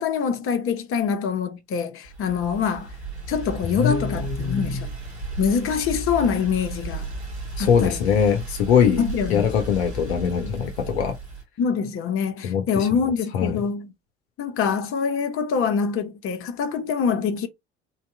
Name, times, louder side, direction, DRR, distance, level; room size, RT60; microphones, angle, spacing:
voice 1, 0.0-2.9 3.3-4.9 5.4-7.1 7.6-8.0 9.0-9.5 11.6-13.9 14.4-17.5, left 6 dB, 40° left, 1.0 m, -25 dB
sound 1, 2.0-11.4, right 3 dB, 80° right, 2.2 m, -34 dB
voice 2, 3.6-4.8 7.6-9.0 9.3-11.2 12.4-12.9 13.3-13.6, left 7 dB, 70° left, 0.8 m, -22 dB
4.1 x 2.8 x 3.3 m
figure-of-eight pair, 60°, 33 cm